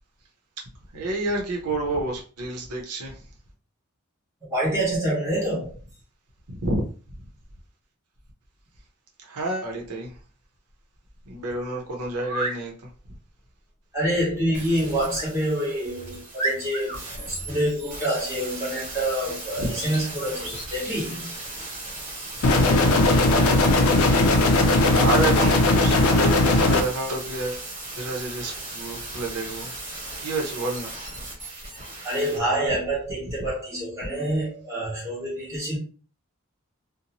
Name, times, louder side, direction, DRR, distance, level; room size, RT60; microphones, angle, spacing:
voice 1, 0.9-3.2 6.5-6.9 9.2-10.1 11.3-12.7 19.6-19.7 23.9-24.4 24.9-27.6 28.0-29.7 30.2-30.9, right 2 dB, 90° right, 0.7 m, -29 dB
voice 2, 4.5-5.7 13.9-21.3 32.0-35.8, right 1 dB, 15° right, 1.0 m, -27 dB
sound 1, 12.2-12.6 15.1-15.3 15.8-15.9 16.4-17.0 19.7-20.0 20.4-20.7, right 1 dB, 30° left, 1.0 m, -31 dB
sound 2, 14.5-32.4 32.7-32.8, right 2 dB, 35° right, 1.2 m, -37 dB
sound 3, 22.4-26.8, left 2 dB, 70° left, 0.4 m, -18 dB
2.7 x 2.1 x 2.9 m
head